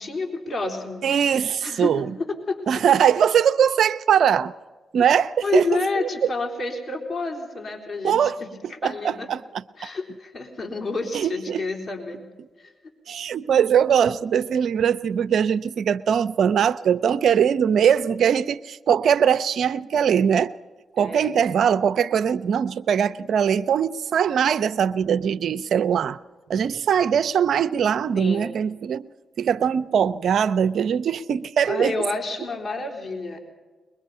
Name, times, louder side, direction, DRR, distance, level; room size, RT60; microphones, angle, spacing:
voice 1, 0.0-1.1 1.6-2.6 5.4-9.3 9.8-12.2 12.6-12.7 21.0-21.4 28.1-28.5 31.7-33.4, left 3 dB, 55° left, 3.8 m, -29 dB
voice 2, 1.0-2.1 2.7-4.5 4.9-5.7 6.0-6.1 8.0-8.4 8.8-9.4 9.8-9.9 11.1-11.6 13.1-20.5 21.0-26.2 26.5-29.1 29.4-31.9, right 8 dB, 70° right, 0.5 m, -21 dB
22.0 x 21.5 x 5.6 m
supercardioid pair, 45°, 0 cm